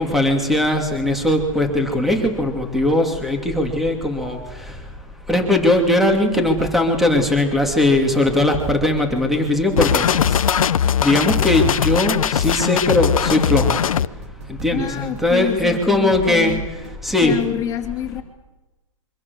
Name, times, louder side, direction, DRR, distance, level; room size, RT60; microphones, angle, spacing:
voice 1, 0.0-4.4 5.3-10.4 11.0-13.8 14.5-16.6 17.0-17.4, left 1 dB, ahead, 4 dB, 2.8 m, -19 dB
sound 1, 8.6-8.8 9.3-9.5 10.1-11.8 12.3-12.5 13.1-14.8 15.3-15.5 16.1-17.6, right 7 dB, 55° right, 1.8 m, -35 dB
sound 2, 9.8-14.1, left 9 dB, 80° left, 0.9 m, -19 dB
voice 2, 14.7-16.6 17.2-18.2, left 10 dB, 20° left, 2 dB, 2.9 m, -27 dB
25.5 x 24.5 x 7.2 m, 1.1 s
hypercardioid pair, 150°, 18 cm